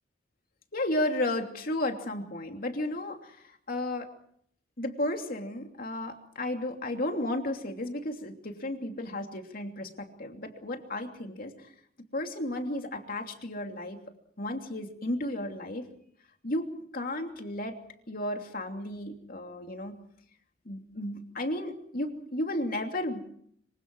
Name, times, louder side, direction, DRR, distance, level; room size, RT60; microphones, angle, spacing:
voice 1, 0.7-4.1 4.8-11.7 12.1-14.0 14.4-15.9 16.4-17.8 18.1-19.9 20.6-23.2, left 1 dB, 50° left, 4 dB, 3.0 m, -33 dB
26.0 x 25.0 x 4.8 m, 0.66 s
head